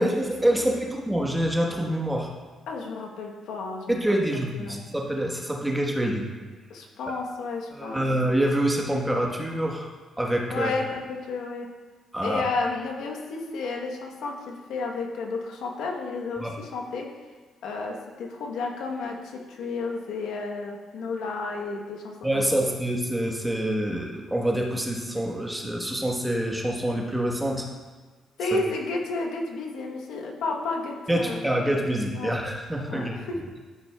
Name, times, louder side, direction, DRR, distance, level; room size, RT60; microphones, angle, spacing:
voice 1, 0.0-2.3 3.9-6.3 7.1-7.2 7.7-9.9 10.2-10.7 12.1-12.4 16.4-16.5 22.2-27.7 28.5-28.6 31.1-33.2, right 1 dB, 10° right, 0 dB, 1.2 m, -26 dB
voice 2, 2.7-4.0 4.3-4.8 6.7-8.0 10.5-11.7 12.2-17.1 17.6-22.6 28.4-31.5 32.1-32.4 32.9-33.4, left 3 dB, 80° left, 1 dB, 1.0 m, -32 dB
12.5 x 5.6 x 2.3 m, 1.4 s
cardioid pair, 90°, 0 cm